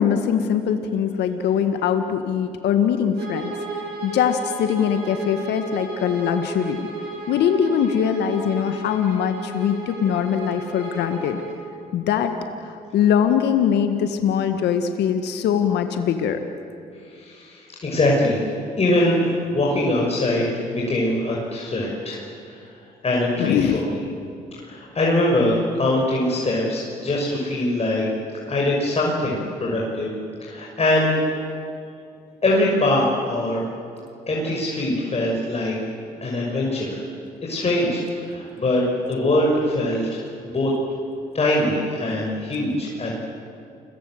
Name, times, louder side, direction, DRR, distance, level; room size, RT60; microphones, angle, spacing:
voice 1, 0.0-3.5 4.0-6.8 7.3-11.4 11.9-12.3 12.6-16.4 23.4-23.8, left 8 dB, 70° left, 7 dB, 1.7 m, -22 dB
Bowed string instrument, 3.1-11.7, right 3 dB, 70° right, 7.3 m, -34 dB
voice 2, 17.1-18.4 18.8-22.6 23.0-24.0 24.6-28.1 28.5-30.1 30.4-31.5 32.4-33.6 34.3-35.8 36.2-37.0 37.4-40.7 41.3-43.1, left 1 dB, 35° left, -3 dB, 6.4 m, -22 dB
29.5 x 23.0 x 8.0 m, 2.5 s
hypercardioid pair, 55°, 18 cm